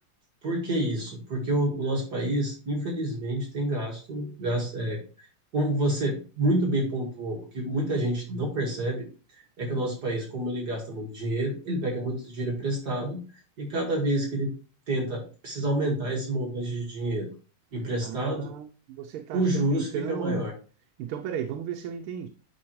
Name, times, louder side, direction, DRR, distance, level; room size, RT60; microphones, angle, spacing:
voice 1, 0.4-5.0 5.5-9.1 9.6-13.2 13.6-14.5 14.9-17.3 17.7-18.5 19.3-20.5, right 1 dB, 50° right, 2.4 m, -28 dB
voice 2, 18.0-20.4 21.0-22.3, right 9 dB, 80° right, 1.5 m, -35 dB
10.5 x 4.3 x 3.0 m
omnidirectional pair, 2.3 m